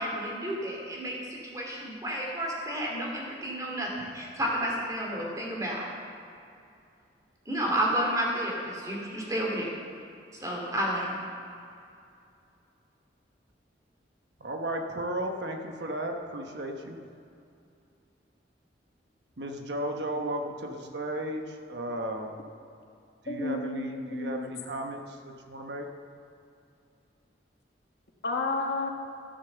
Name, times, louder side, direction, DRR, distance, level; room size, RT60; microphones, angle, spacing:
voice 1, 0.0-5.9 7.5-9.7 10.4-11.2, equal, 20° right, -2 dB, 2.4 m, -31 dB
voice 2, 14.4-17.0 19.4-22.3 23.2-25.9, right 1 dB, 70° right, 4 dB, 1.0 m, -34 dB
voice 3, 23.3-24.5 28.2-28.9, left 3 dB, 60° left, 2 dB, 1.3 m, -31 dB
13.5 x 6.7 x 6.9 m, 2.5 s
head